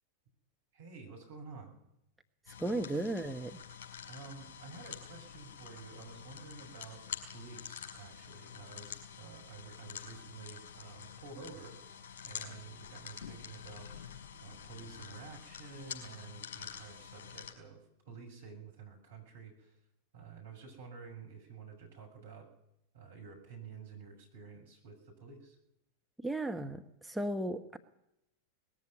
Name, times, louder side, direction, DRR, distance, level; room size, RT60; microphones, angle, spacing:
voice 1, 0.7-1.7 4.1-7.0 7.3-11.8 12.2-13.9 14.4-17.8 18.1-19.7 20.1-22.5 22.9-25.6, right 5 dB, 60° right, 2 dB, 7.2 m, -50 dB
sound 1, 2.5-17.5, left 8 dB, 55° left, 4.8 m, -47 dB
voice 2, 2.6-3.6 26.2-27.8, right 1 dB, 5° right, 5 dB, 1.1 m, -35 dB
20.0 x 14.5 x 9.7 m, 0.80 s
figure-of-eight pair, 90°, 0 cm